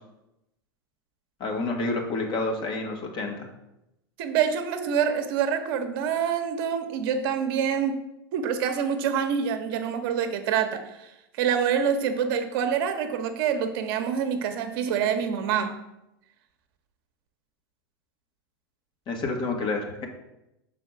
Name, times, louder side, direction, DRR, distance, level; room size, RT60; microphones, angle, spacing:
voice 1, 1.4-3.5 19.1-20.1, left 3 dB, 40° left, 2 dB, 1.5 m, -29 dB
voice 2, 4.2-8.0 8.3-11.1 11.4-15.8, right 7 dB, 60° right, 7 dB, 1.0 m, -26 dB
5.5 x 4.1 x 5.7 m, 0.89 s
hypercardioid pair, 105°, 13 cm